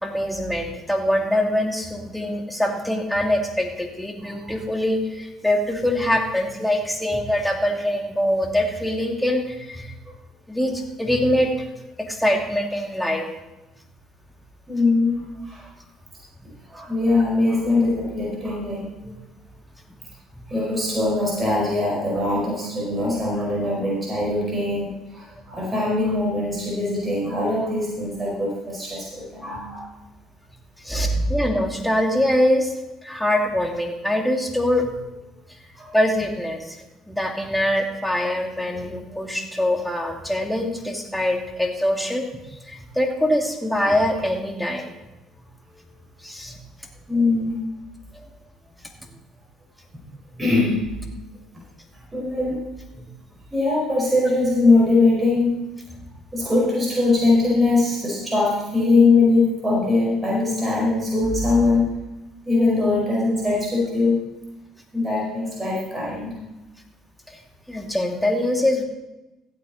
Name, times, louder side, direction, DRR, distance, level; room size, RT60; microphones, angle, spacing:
voice 1, 0.0-9.9 10.5-11.7 12.0-13.3 19.0-19.1 30.8-32.7 33.0-35.0 35.9-36.8 37.1-42.3 42.7-44.9 46.2-46.6 48.1-48.3 50.3-50.4 53.0-53.1 67.3-67.4 67.7-68.8, left 1 dB, 5° left, 2 dB, 2.4 m, -23 dB
voice 2, 14.7-15.6 16.7-18.8 20.5-29.9 30.9-31.3 35.8-36.0 47.1-47.6 50.4-50.8 52.1-52.7 53.5-55.6 56.3-61.9 62.4-64.2 64.9-66.3, left 2 dB, 20° right, -4 dB, 4.8 m, -21 dB
15.5 x 8.5 x 4.1 m, 1.0 s
hypercardioid pair, 65°, 0 cm